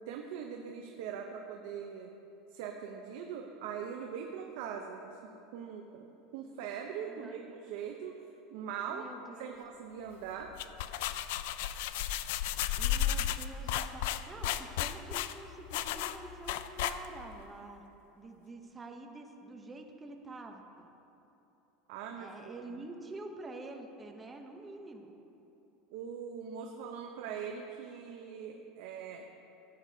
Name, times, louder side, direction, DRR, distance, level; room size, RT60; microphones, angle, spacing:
voice 1, 0.0-2.1 2.5-5.2 5.5-6.1 6.3-8.1 8.5-9.1 9.4-10.6 21.9-22.8 25.9-29.3, right 7 dB, 65° right, 2 dB, 0.6 m, -41 dB
voice 2, 7.1-7.4 8.9-9.5 12.8-17.9 18.1-20.9 22.2-25.1, right 2 dB, 15° right, 3 dB, 0.7 m, -47 dB
sound 1, 10.4-17.3, left 11 dB, 75° left, 0.3 m, -34 dB
14.0 x 8.2 x 2.7 m, 2.9 s
supercardioid pair, 155°, 0 cm